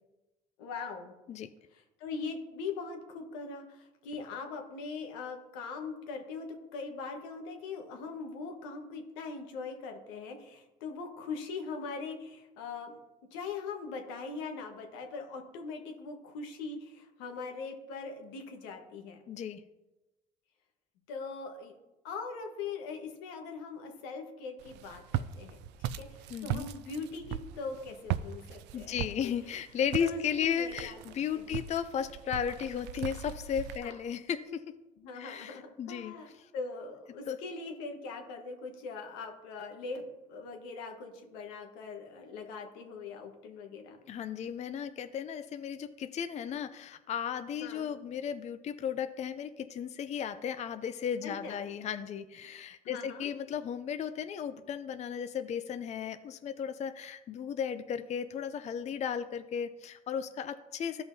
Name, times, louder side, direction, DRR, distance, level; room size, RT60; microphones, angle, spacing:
voice 1, 0.6-1.1 1.7-13.0 13.3-19.2 21.1-21.7 22.0-29.3 30.0-31.0 31.3-31.5 33.8-33.9 35.0-44.0 47.6-47.9 51.2-51.6 52.8-53.3, left 4 dB, 85° left, 3 dB, 1.3 m, -41 dB
voice 2, 19.3-19.6 26.3-26.7 28.7-34.6 35.1-36.1 37.3-37.4 44.1-61.0, left 8 dB, 40° left, 10 dB, 0.5 m, -35 dB
Walk footsteps, 24.6-33.8, right 11 dB, 70° right, 0.4 m, -39 dB
14.0 x 5.7 x 2.7 m, 1.0 s
supercardioid pair, 85°, 18 cm